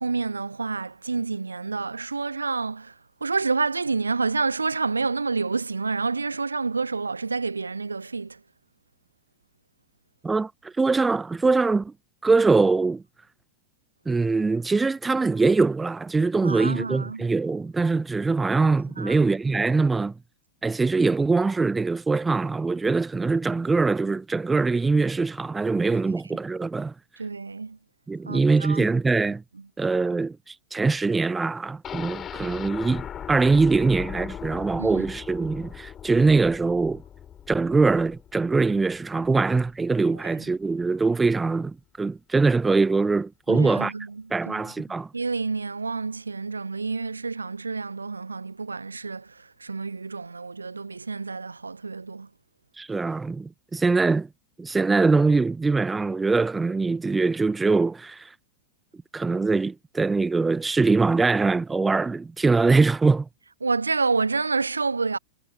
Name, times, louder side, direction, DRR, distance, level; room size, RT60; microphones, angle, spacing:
voice 1, 0.0-2.9 3.2-8.4 16.4-17.3 19.0-19.2 27.2-27.8 28.2-28.9 34.8-35.0 43.5-44.5 45.1-52.3 63.6-65.2, right 4 dB, 80° right, 0.7 m, -28 dB
voice 2, 10.2-11.9 12.2-13.0 14.1-20.1 20.6-26.9 28.1-29.4 29.8-37.0 37.5-43.9 44.3-45.1 52.8-54.3 54.6-58.3 59.1-63.3, right 3 dB, 10° right, 0.7 m, -23 dB
sound 1, 31.8-39.7 40.1-40.2 40.5-40.6, left 9 dB, 25° left, 5.8 m, -39 dB
figure-of-eight pair, 90°, 0 cm